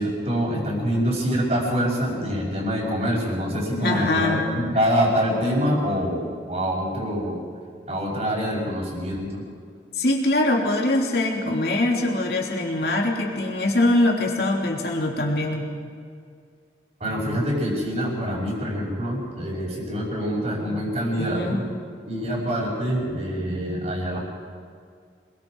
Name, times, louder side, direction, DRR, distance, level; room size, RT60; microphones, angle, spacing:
voice 1, 0.0-7.4 7.9-9.5 17.0-21.7 22.1-24.2, equal, 40° right, -8 dB, 5.5 m, -25 dB
voice 2, 3.8-4.4 9.9-15.6 21.1-21.6, left 2 dB, 60° left, -1 dB, 3.3 m, -23 dB
27.5 x 22.0 x 4.9 m, 2.2 s
head